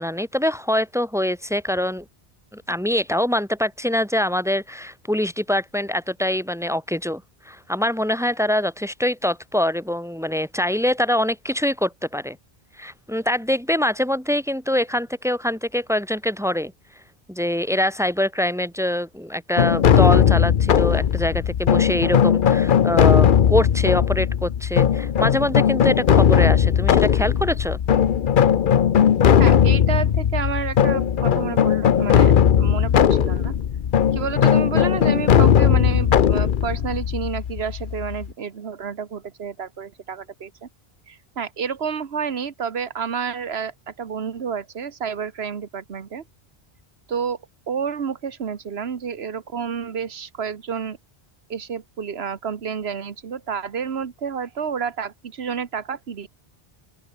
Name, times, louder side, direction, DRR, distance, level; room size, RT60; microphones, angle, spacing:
voice 1, 0.0-2.0 2.5-12.4 12.8-16.7 17.3-27.8, left 1 dB, 5° right, 1.3 m, -24 dB
sound 1, 19.6-38.3, left 8 dB, 55° left, 0.9 m, -18 dB
voice 2, 29.4-33.6 34.1-40.7 41.1-46.2 47.1-47.4 47.7-51.0 51.5-56.3, right 6 dB, 90° right, 1.5 m, -30 dB
open air
omnidirectional pair, 1.0 m